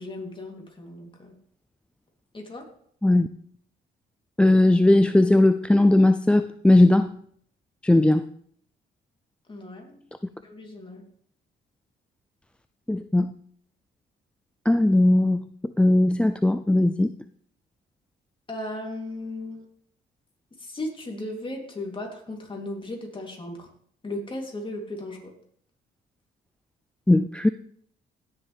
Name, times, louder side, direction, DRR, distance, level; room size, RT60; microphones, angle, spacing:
voice 1, 0.0-1.3 2.3-2.7 9.5-10.0 10.4-11.0 18.5-19.7 20.6-23.7 24.0-25.3, left 1 dB, 25° left, 1 dB, 3.1 m, -36 dB
voice 2, 4.4-7.1 7.8-8.2 12.9-13.3 14.7-17.1 27.1-27.5, left 1 dB, 5° left, 11 dB, 0.3 m, -18 dB
17.0 x 7.1 x 3.4 m, 0.63 s
cardioid pair, 90°, 20 cm